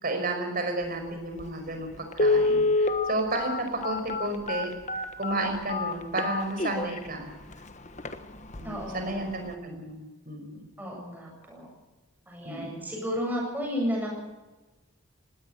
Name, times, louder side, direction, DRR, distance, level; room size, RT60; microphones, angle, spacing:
voice 1, 0.0-7.3 8.6-10.0 10.3-10.7 12.4-12.8, right 2 dB, 40° right, 5 dB, 5.3 m, -32 dB
Telephone, 1.4-1.5 2.1-7.0 7.5-7.6 8.0-8.2 8.5-8.8 9.1-9.2, left 3 dB, 30° left, 1.3 m, -26 dB
voice 2, 8.6-9.2 10.8-11.7 12.3-14.1, equal, 10° right, -1 dB, 8.0 m, -32 dB
19.5 x 17.5 x 8.2 m, 1.1 s
head